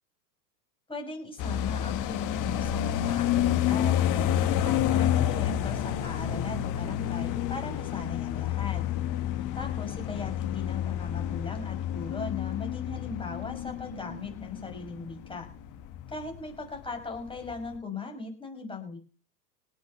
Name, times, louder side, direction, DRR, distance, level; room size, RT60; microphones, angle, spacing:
voice 1, 0.9-8.8 9.5-15.5 16.1-19.0, left 4 dB, 10° left, 2 dB, 6.2 m, -38 dB
sound 1, 1.4-16.5 16.8-16.9 17.2-17.7, left 11 dB, 40° left, 1.7 m, -29 dB
18.5 x 6.8 x 6.9 m, 0.39 s
hypercardioid pair, 105°, 49 cm